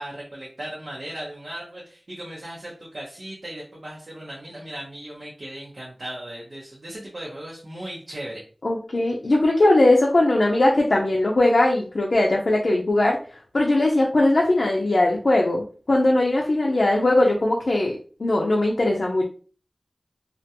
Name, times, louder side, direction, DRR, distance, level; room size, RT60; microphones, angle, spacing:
voice 1, 0.0-8.4, right 1 dB, 70° right, -5 dB, 0.7 m, -37 dB
voice 2, 8.6-13.2 13.5-19.2, left 2 dB, 75° left, -2 dB, 0.4 m, -20 dB
2.4 x 2.2 x 2.8 m, 0.39 s
wide cardioid pair, 45°, 0 cm